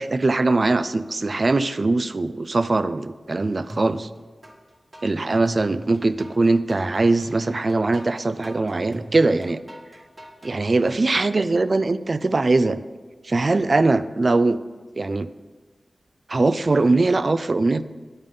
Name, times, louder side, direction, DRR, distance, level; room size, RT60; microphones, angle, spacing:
voice 1, 0.0-4.1 5.0-9.6 10.4-12.8 13.2-14.6 15.0-15.3 16.3-17.8, right 3 dB, 50° right, 14 dB, 0.3 m, -21 dB
sound 1, 3.7-4.5 4.9-10.6, right 1 dB, 35° right, 1.3 m, -40 dB
9.5 x 3.7 x 5.2 m, 1.3 s
cardioid pair, 55°, 0 cm